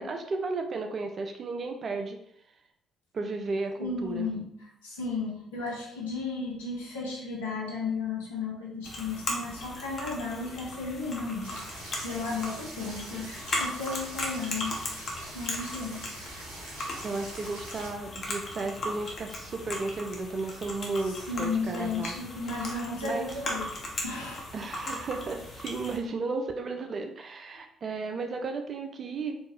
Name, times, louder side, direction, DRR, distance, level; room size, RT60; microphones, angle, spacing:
voice 1, 0.0-2.2 3.1-4.3 17.0-22.1 22.6-23.4 24.5-29.4, right 3 dB, 45° right, 6 dB, 0.4 m, -34 dB
voice 2, 3.8-4.4 4.8-14.7 15.3-16.3 21.3-23.7 24.0-24.4, left 4 dB, 85° left, -4 dB, 0.9 m, -34 dB
sound 1, 8.8-26.0, left 1 dB, 50° left, 1.0 m, -38 dB
sound 2, 11.4-17.9, right 1 dB, 80° right, 1.0 m, -44 dB
4.3 x 2.7 x 3.1 m, 0.73 s
hypercardioid pair, 50°, 0 cm